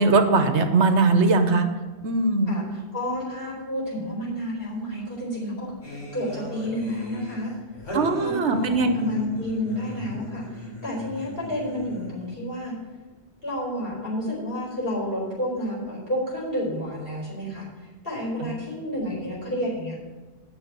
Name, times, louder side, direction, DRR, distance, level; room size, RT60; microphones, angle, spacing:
voice 1, 0.0-1.7 2.0-2.5 7.9-9.0 18.4-18.5, right 3 dB, 75° right, 7 dB, 1.2 m, -20 dB
voice 2, 2.9-7.5 8.2-12.7 13.4-17.7 18.0-19.9, left 1 dB, 50° left, -5 dB, 5.0 m, -30 dB
sound 1, 5.8-12.3, equal, 85° left, 3.4 m, -38 dB
9.6 x 6.4 x 8.4 m, 1.3 s
omnidirectional pair, 1.2 m